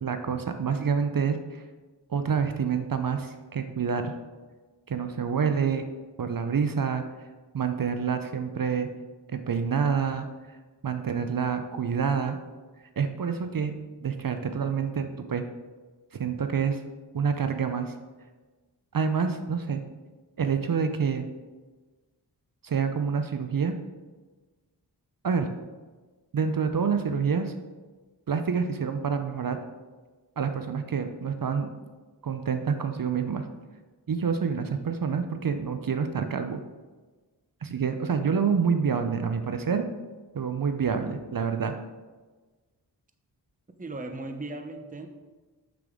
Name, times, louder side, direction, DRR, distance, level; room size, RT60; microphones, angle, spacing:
voice 1, 0.0-1.6 2.1-4.1 4.9-5.9 6.2-7.0 7.5-8.9 9.3-10.3 10.8-12.4 13.0-13.7 14.0-15.4 16.1-16.8 17.1-17.9 18.9-19.8 20.4-21.3 22.6-23.7 25.2-25.5 26.3-27.5 28.3-29.6 30.4-31.7 32.2-33.5 34.1-36.6 37.6-39.9 40.3-41.8, right 6 dB, 50° right, 8 dB, 0.6 m, -27 dB
voice 2, 43.8-45.1, right 2 dB, 20° right, 6 dB, 0.7 m, -37 dB
6.8 x 6.7 x 3.7 m, 1.3 s
wide cardioid pair, 55°, 43 cm